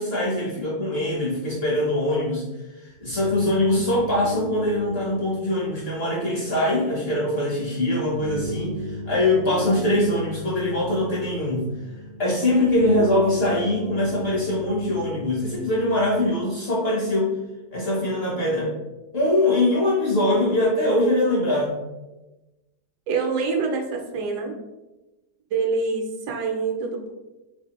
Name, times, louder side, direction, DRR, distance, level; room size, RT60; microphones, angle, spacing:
voice 1, 0.0-2.4 2.8-11.6 12.2-17.3 17.7-18.7 19.1-21.8, left 1 dB, 50° left, -5 dB, 0.8 m, -22 dB
sound 1, 2.9-16.3, left 2 dB, 55° right, 0.4 m, -37 dB
voice 2, 23.1-24.5 25.5-27.1, right 4 dB, 75° right, 3 dB, 1.1 m, -26 dB
3.3 x 3.3 x 2.9 m, 1.1 s
omnidirectional pair, 1.8 m